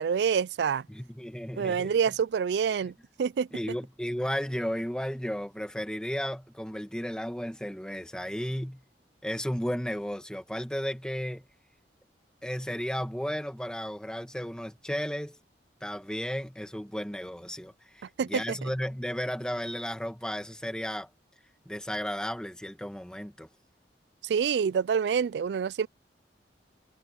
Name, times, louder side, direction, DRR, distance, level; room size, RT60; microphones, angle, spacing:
voice 1, 0.0-0.9 1.6-2.9 3.2-3.5 18.2-18.7 24.2-25.9, right 7 dB, 70° right, 0.3 m, -27 dB
voice 2, 0.9-1.9 3.5-8.8 9.2-11.5 12.4-15.4 15.8-21.1 21.7-23.5, equal, 5° left, 1.9 m, -34 dB
head